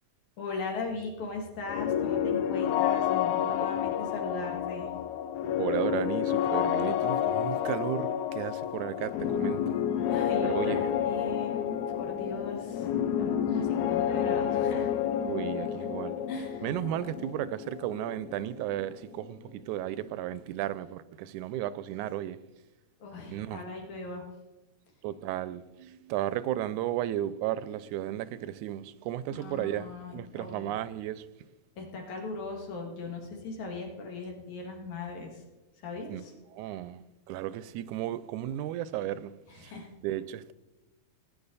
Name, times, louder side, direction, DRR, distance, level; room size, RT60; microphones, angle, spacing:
voice 1, 0.4-4.9 10.1-12.9 13.2-14.9 16.3-16.7 23.0-24.2 29.3-30.8 31.8-35.4 35.8-36.3 39.5-39.9, left 3 dB, 75° left, 3.6 m, -39 dB
sound 1, 1.7-19.3, left 9 dB, 90° left, 2.2 m, -30 dB
voice 2, 5.6-9.8 10.4-10.9 15.3-16.2 16.6-22.4 23.3-23.6 25.0-31.3 36.1-36.2 36.5-37.0 37.3-39.3 39.6-39.7 40.0-40.5, right 12 dB, 85° right, 2.0 m, -34 dB
18.5 x 9.9 x 4.1 m
omnidirectional pair, 3.4 m